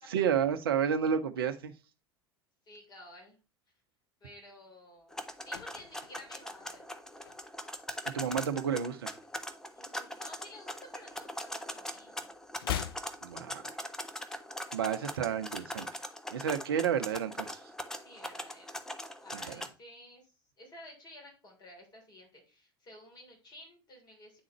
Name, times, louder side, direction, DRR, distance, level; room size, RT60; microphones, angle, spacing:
voice 1, 0.1-1.7 8.1-9.1 13.2-13.6 14.7-15.9 16.3-17.6 19.3-19.5, right 8 dB, 70° right, 0.7 m, -31 dB
voice 2, 2.6-3.4 4.2-6.8 9.7-12.3 14.8-15.3 17.9-18.8 19.2-24.4, left 1 dB, 35° left, 3.2 m, -53 dB
sound 1, 5.1-7.8 8.1-8.4 8.7-10.1 10.4-11.8 12.0-14.1 14.4-14.5, left 11 dB, 70° left, 0.4 m, -43 dB
sound 2, 5.1-19.7, left 1 dB, 5° left, 0.6 m, -41 dB
9.4 x 3.8 x 3.0 m
figure-of-eight pair, 75°, 13 cm